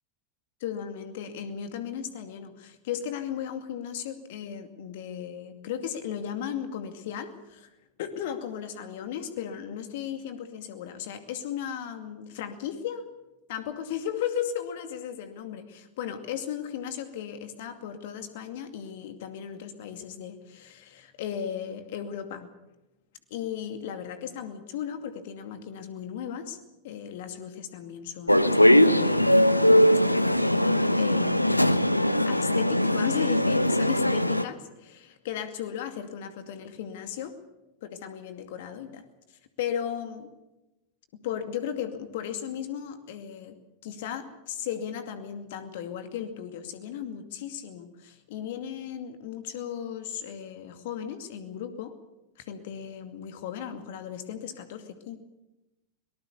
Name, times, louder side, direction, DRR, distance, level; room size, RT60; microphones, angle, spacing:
voice 1, 0.6-7.7 8.0-13.1 13.5-22.5 23.3-26.6 26.8-29.4 31.0-31.8 32.3-37.3 37.8-39.0 39.6-40.3 41.1-43.6 43.8-51.9 52.4-55.2, left 9 dB, 50° left, 8 dB, 2.4 m, -36 dB
sound 1, 28.3-34.4, left 1 dB, 90° left, 0.8 m, -21 dB
23.5 x 19.0 x 7.0 m, 0.98 s
figure-of-eight pair, 90°, 0 cm